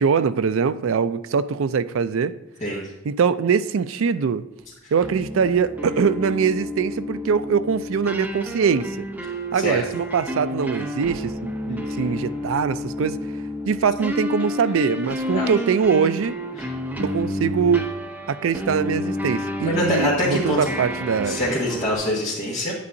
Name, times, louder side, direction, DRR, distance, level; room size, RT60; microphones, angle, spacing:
voice 1, 0.0-2.3 3.1-4.4 4.9-9.1 9.5-13.2 13.7-16.4 17.0-17.9 18.3-21.4, right 6 dB, 70° right, 13 dB, 0.4 m, -22 dB
sound 1, 5.0-21.9, left 1 dB, 5° right, 0.7 m, -30 dB
voice 2, 9.5-9.8 15.3-15.5 16.6-16.7 19.6-20.7 21.2-22.7, left 1 dB, 35° left, -7 dB, 1.6 m, -24 dB
9.6 x 8.4 x 2.6 m, 0.98 s
head